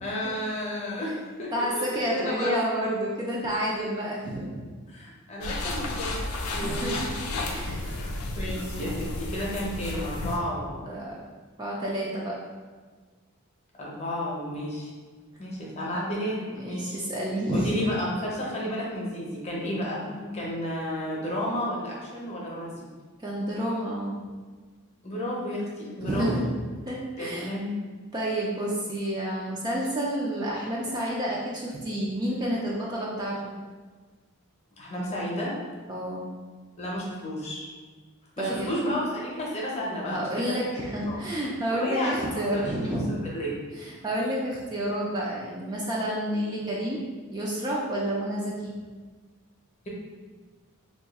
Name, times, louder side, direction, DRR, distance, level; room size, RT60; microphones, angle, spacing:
voice 1, 0.0-1.1 1.4-2.6 4.9-6.1 6.5-7.1 7.8-10.9 13.8-14.9 15.4-17.0 17.5-20.0 20.3-22.7 25.0-26.3 27.2-27.8 34.8-35.5 36.8-37.7 38.4-40.7 41.1-41.2 41.7-42.2 42.5-43.6, equal, 30° left, -5 dB, 0.7 m, -32 dB
voice 2, 1.5-4.7 6.6-7.1 7.5-7.9 10.8-11.2 11.6-12.4 16.5-17.9 20.0-20.3 23.2-24.2 26.0-26.5 26.9-27.5 28.1-33.5 35.9-36.3 38.4-38.7 40.0-43.2 43.7-47.0 47.3-48.7, equal, 20° right, -5 dB, 0.3 m, -29 dB
sound 1, 5.4-10.4, left 2 dB, 70° left, 0.4 m, -32 dB
2.7 x 2.4 x 4.0 m, 1.4 s
head